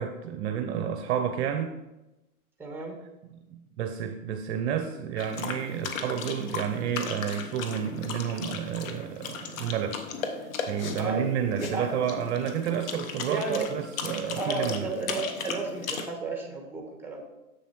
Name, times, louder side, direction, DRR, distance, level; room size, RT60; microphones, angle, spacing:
voice 1, 0.0-1.7 3.2-10.0 10.7-14.9, right 8 dB, 50° right, 5 dB, 0.7 m, -30 dB
voice 2, 2.6-3.0 11.0-11.9 13.3-13.7 14.4-17.2, right 3 dB, 5° right, 1 dB, 1.3 m, -33 dB
sound 1, 5.2-16.1, left 5 dB, 65° left, 1.1 m, -37 dB
7.0 x 6.9 x 3.0 m, 0.98 s
hypercardioid pair, 115°, 44 cm